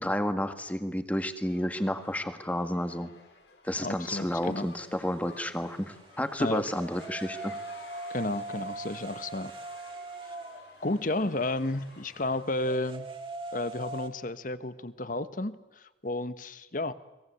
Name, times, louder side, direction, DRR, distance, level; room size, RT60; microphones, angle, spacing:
voice 1, 0.0-3.1 3.6-7.5, equal, 10° left, 8 dB, 1.7 m, -31 dB
sound 1, 1.4-12.4, left 4 dB, 75° left, 4.8 m, -52 dB
sound 2, 3.6-14.1, right 2 dB, 30° right, 2.5 m, -43 dB
voice 2, 3.8-4.7 6.4-6.6 8.1-9.5 10.8-13.1 13.5-16.9, left 2 dB, 45° left, 12 dB, 1.3 m, -32 dB
30.0 x 21.5 x 8.2 m, 1.1 s
head